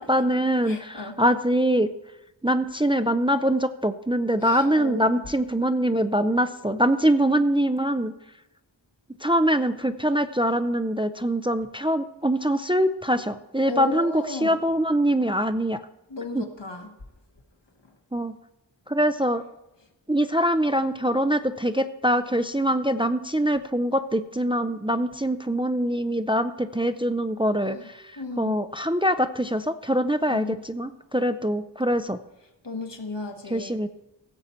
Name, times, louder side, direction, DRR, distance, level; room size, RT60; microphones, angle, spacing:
voice 1, 0.1-1.9 2.4-8.1 9.2-15.8 16.3-16.4 18.1-18.3 18.9-19.4 20.1-32.2 33.5-33.9, equal, 10° right, 10 dB, 0.5 m, -23 dB
voice 2, 0.7-1.2 4.4-5.2 13.7-14.6 16.1-16.9 27.7-27.8 28.2-28.6 30.3-30.6 32.6-33.8, left 2 dB, 70° left, 4 dB, 1.5 m, -34 dB
16.5 x 7.0 x 4.4 m, 0.98 s
wide cardioid pair, 45°, 44 cm